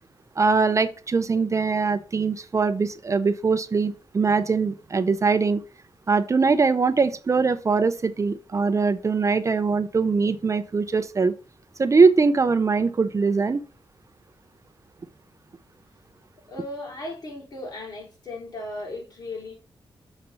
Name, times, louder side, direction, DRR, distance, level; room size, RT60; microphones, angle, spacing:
voice 1, 0.4-5.6 6.1-11.3 11.8-13.6, right 4 dB, 35° right, 0.5 m, -22 dB
voice 2, 16.5-19.5, left 2 dB, 45° left, 3.3 m, -36 dB
6.6 x 4.1 x 5.6 m
wide cardioid pair, 105°, 9 cm